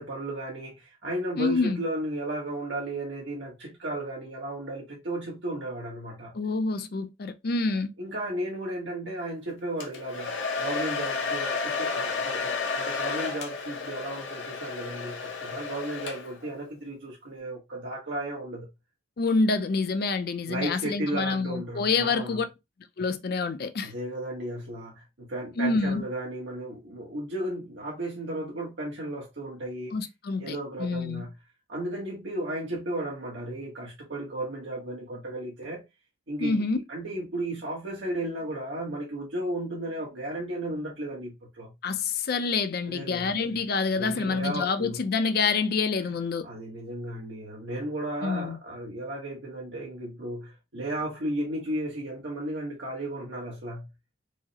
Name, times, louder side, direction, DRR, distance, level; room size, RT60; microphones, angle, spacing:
voice 1, 0.0-6.3 8.0-18.7 20.5-22.4 23.8-30.0 30.4-31.3 31.7-35.8 36.3-41.7 42.9-43.3 43.9-45.0 46.4-53.9, right 1 dB, 70° right, 1.0 m, -34 dB
voice 2, 1.4-1.8 6.3-7.9 19.2-22.5 23.0-23.9 25.6-26.0 29.9-31.3 36.4-36.8 41.8-46.5 48.2-48.6, left 4 dB, 55° left, 0.4 m, -27 dB
Domestic sounds home sounds, 9.8-16.5, left 4 dB, 75° left, 0.8 m, -32 dB
4.7 x 2.0 x 2.7 m
head